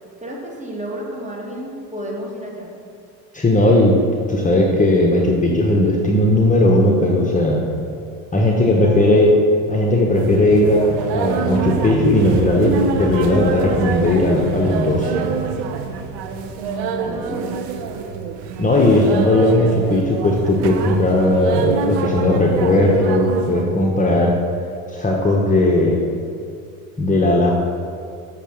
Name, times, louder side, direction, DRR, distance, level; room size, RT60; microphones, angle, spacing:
voice 1, 0.2-2.7 8.6-9.2 16.7-17.4, right 1 dB, 15° right, -2 dB, 2.4 m, -32 dB
voice 2, 3.3-4.0 4.3-7.6 8.3-9.3 9.7-10.8 11.1-15.1 18.6-24.3 24.9-26.0 27.0-27.5, left 1 dB, 20° left, -1 dB, 1.3 m, -16 dB
sound 1, 10.1-23.6, right 5 dB, 65° right, 1.2 m, -26 dB
8.4 x 6.7 x 6.5 m, 2.4 s
supercardioid pair, 90°, 42 cm